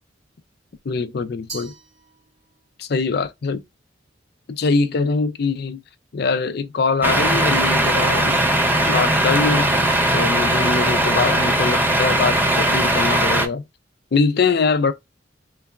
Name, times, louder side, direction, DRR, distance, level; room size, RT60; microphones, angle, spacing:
voice 1, 0.9-1.7 2.8-3.6 4.5-5.8 6.1-8.4 8.8-9.7 10.1-13.6 14.1-14.9, left 4 dB, 55° left, 0.4 m, -22 dB
Glass, 1.5-2.7, right 3 dB, 55° right, 2.5 m, -40 dB
Truck, 7.0-13.5, right 1 dB, 10° right, 0.5 m, -19 dB
3.9 x 3.3 x 2.3 m
head